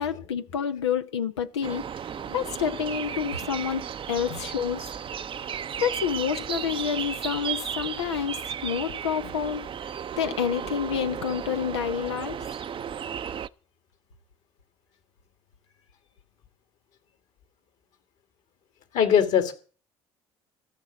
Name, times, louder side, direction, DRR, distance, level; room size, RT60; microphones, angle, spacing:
voice 1, 0.0-1.8 2.3-4.8 5.8-9.6 10.2-12.4, left 7 dB, 90° left, 0.9 m, -28 dB
sound 1, 1.6-13.5, right 8 dB, 40° right, 0.6 m, -34 dB
voice 2, 2.2-2.8 18.9-19.5, left 8 dB, 60° left, 2.6 m, -23 dB
14.0 x 6.1 x 9.5 m
hypercardioid pair, 60°, 14 cm